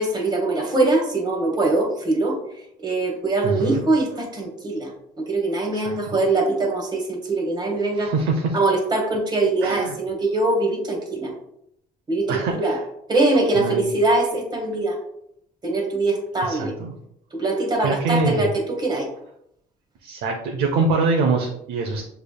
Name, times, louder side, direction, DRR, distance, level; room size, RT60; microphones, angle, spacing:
voice 1, 0.0-2.4 2.8-4.9 5.2-8.1 8.5-11.3 12.1-12.8 13.1-15.0 15.6-16.7 17.3-18.5 18.8-19.1, right 2 dB, 25° right, 0 dB, 1.6 m, -22 dB
voice 2, 3.4-3.8 5.7-6.2 7.9-8.6 9.6-9.9 12.3-12.8 13.5-13.9 16.4-16.9 17.8-18.5 20.0-22.0, right 3 dB, 85° right, 1 dB, 0.7 m, -24 dB
6.7 x 3.4 x 2.2 m, 0.74 s
cardioid pair, 110°, 17 cm